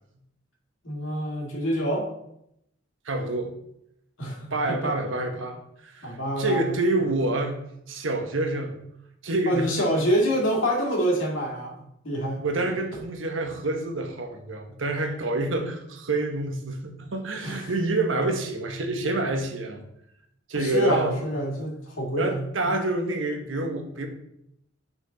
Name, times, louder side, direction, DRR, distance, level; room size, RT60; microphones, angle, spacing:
voice 1, 0.8-2.1 4.2-4.9 6.0-6.6 9.5-12.4 17.4-17.7 20.5-22.7, equal, 85° left, -1 dB, 2.2 m, -26 dB
voice 2, 3.0-3.5 4.5-5.6 5.8-7.6 7.9-8.8 9.2-9.9 12.4-19.8 20.5-21.2 22.2-24.1, right 2 dB, 80° right, 4 dB, 1.1 m, -27 dB
6.6 x 5.9 x 3.9 m, 0.78 s
head